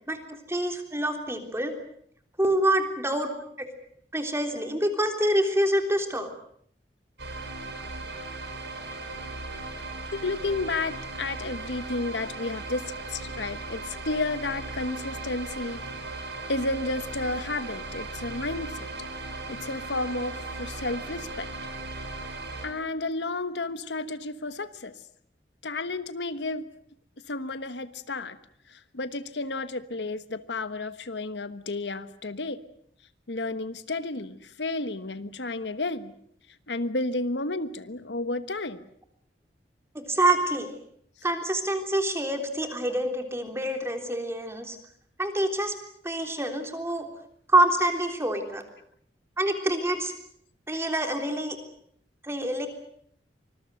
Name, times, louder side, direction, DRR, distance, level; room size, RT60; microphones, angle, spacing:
voice 1, 0.5-1.7 2.4-3.3 3.6-3.7 4.1-6.3 39.9-40.7 41.2-44.8 45.2-45.7 46.0-47.1 47.5-48.6 49.4-50.1 50.7-51.6 52.2-52.7, right 1 dB, 15° right, 5 dB, 3.5 m, -26 dB
sound 1, 7.2-22.7, right 2 dB, 85° right, 5.2 m, -37 dB
voice 2, 10.1-12.8 13.1-15.8 16.5-18.9 19.5-21.5 22.6-24.9 25.6-26.6 27.3-28.4 28.7-32.6 33.3-36.1 36.7-38.9, left 2 dB, 85° left, 12 dB, 1.3 m, -32 dB
25.5 x 21.0 x 7.8 m, 0.66 s
head